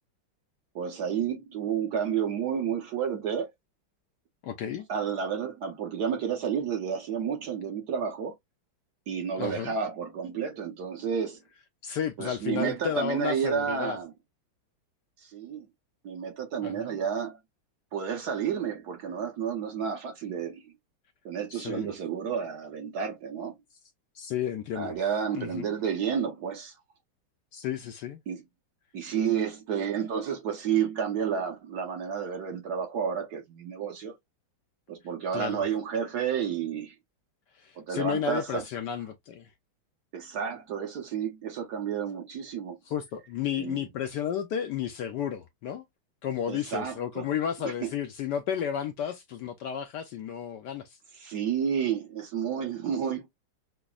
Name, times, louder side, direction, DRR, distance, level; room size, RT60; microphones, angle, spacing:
voice 1, 0.7-3.5 4.9-8.3 9.1-11.4 12.2-14.1 15.2-15.7 16.0-17.4 17.9-20.7 21.2-23.5 24.8-26.7 28.3-28.4 28.9-34.1 34.9-36.9 37.8-38.6 40.1-42.8 43.6-43.8 46.5-47.3 47.6-47.7 51.2-53.3, right 7 dB, 60° right, 1.2 m, -31 dB
voice 2, 4.4-4.9 9.4-9.7 11.8-14.0 16.6-17.0 21.5-21.9 24.1-25.0 25.3-25.7 27.5-28.2 35.3-35.6 37.5-39.5 42.9-45.8 46.2-51.0, left 9 dB, 75° left, 1.0 m, -32 dB
5.8 x 2.1 x 2.3 m
omnidirectional pair, 2.2 m